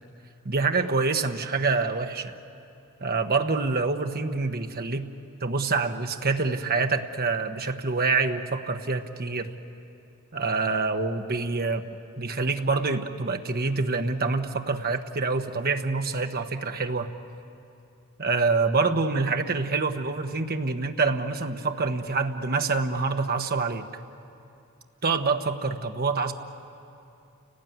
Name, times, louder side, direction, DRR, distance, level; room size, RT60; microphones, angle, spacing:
voice 1, 0.4-2.4 3.0-5.1 5.4-9.5 10.3-17.1 18.2-23.9 25.0-26.3, right 4 dB, 45° right, 6 dB, 1.1 m, -26 dB
30.0 x 18.5 x 9.3 m, 2.7 s
head